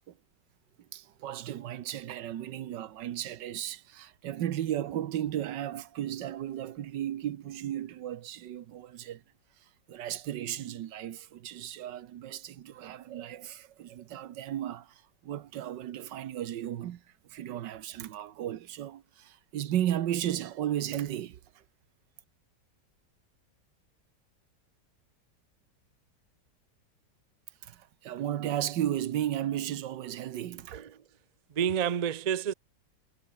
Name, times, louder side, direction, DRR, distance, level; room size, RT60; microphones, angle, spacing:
voice 1, 0.9-9.2 9.9-17.0 17.3-21.6 27.6-30.8, right 11 dB, 90° right, 1.6 m, -35 dB
voice 2, 31.5-32.5, right 8 dB, 75° right, 0.3 m, -29 dB
omnidirectional pair, 1.8 m